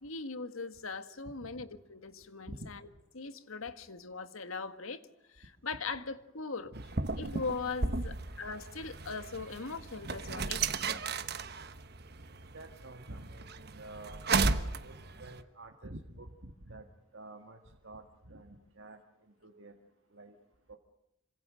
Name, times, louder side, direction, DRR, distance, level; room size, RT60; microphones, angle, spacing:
voice 1, 0.0-2.8 3.1-5.0 5.3-6.7 7.2-10.8, left 4 dB, 85° left, 10 dB, 1.7 m, -40 dB
sound 1, 6.7-15.4, right 4 dB, 50° right, 1.3 m, -35 dB
voice 2, 12.4-14.2 14.8-14.9 15.2-16.9 17.1-19.0 19.4-19.8 20.1-20.4 20.7-20.8, right 1 dB, 65° right, 2 dB, 2.0 m, -48 dB
27.0 x 25.5 x 6.4 m, 0.85 s
head